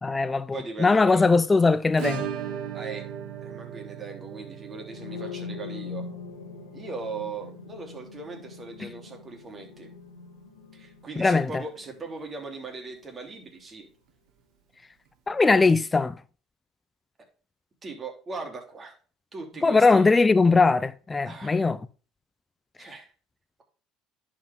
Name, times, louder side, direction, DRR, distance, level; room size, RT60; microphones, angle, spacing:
voice 1, 0.0-2.3 8.8-8.9 11.2-11.6 15.3-16.2 19.6-21.8, left 3 dB, 20° left, 0.5 m, -20 dB
voice 2, 0.5-1.2 2.7-3.1 3.4-6.0 6.7-9.9 10.7-13.9 17.8-19.0 19.3-20.0 21.2-21.6 22.8-23.1, right 3 dB, 35° right, 3.2 m, -39 dB
Acoustic guitar / Strum, 2.0-10.6 10.8-10.9 11.2-11.3 11.7-11.8 13.8-13.9 15.1-15.2, right 9 dB, 65° right, 2.0 m, -39 dB
sound 1, 4.8-12.7, left 5 dB, 90° left, 1.5 m, -42 dB
10.5 x 5.1 x 3.5 m
hypercardioid pair, 70°, 0 cm